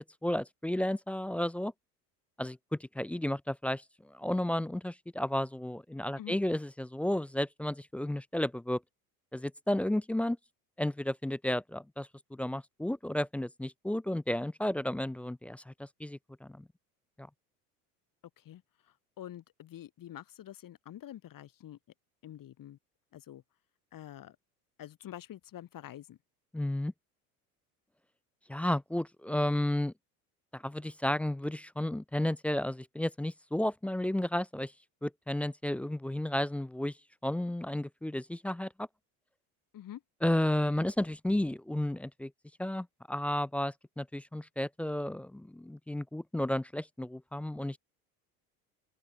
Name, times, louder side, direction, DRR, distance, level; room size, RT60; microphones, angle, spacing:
voice 1, 0.0-1.7 2.4-3.8 4.1-8.8 9.3-10.4 10.8-16.6 17.2-17.3 26.5-26.9 28.5-29.9 30.5-34.7 35.0-36.9 37.2-38.9 40.2-42.3 42.6-47.8, left 1 dB, 5° left, 0.4 m, -32 dB
voice 2, 19.2-21.8 22.2-22.8 23.1-23.4 23.9-24.4 24.8-26.2 39.7-40.0, left 12 dB, 45° left, 6.6 m, -46 dB
open air
hypercardioid pair, 75°, 46 cm